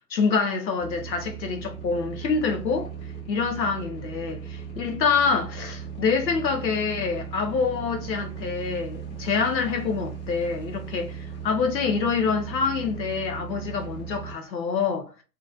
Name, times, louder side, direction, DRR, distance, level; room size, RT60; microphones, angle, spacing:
voice 1, 0.1-2.9 3.3-15.1, left 5 dB, 85° left, 1.0 m, -26 dB
sound 1, 0.8-14.4, right 7 dB, 35° left, 1.2 m, -38 dB
2.9 x 2.5 x 2.4 m
hypercardioid pair, 150°, 50 cm